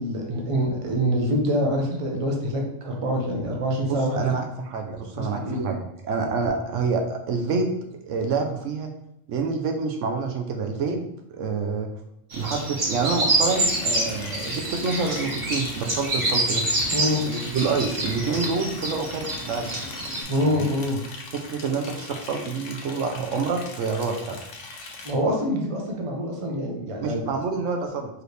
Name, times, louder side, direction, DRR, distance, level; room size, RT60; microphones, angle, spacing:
voice 1, 0.0-4.3 5.1-5.7 16.9-17.2 20.3-21.0 25.0-27.2, equal, 30° right, 0 dB, 0.8 m, -25 dB
voice 2, 3.9-5.8 6.0-7.7 8.1-8.9 9.3-11.0 11.3-11.9 12.3-16.6 17.3-19.7 20.4-20.7 21.3-24.4 27.0-28.1, right 4 dB, 75° right, 3 dB, 0.9 m, -27 dB
sound 1, 12.3-20.2, right 1 dB, 50° right, 1.2 m, -27 dB
Liquid, 13.5-25.1, left 3 dB, 70° left, 1.1 m, -41 dB
4.8 x 3.2 x 3.2 m, 0.81 s
omnidirectional pair, 1.3 m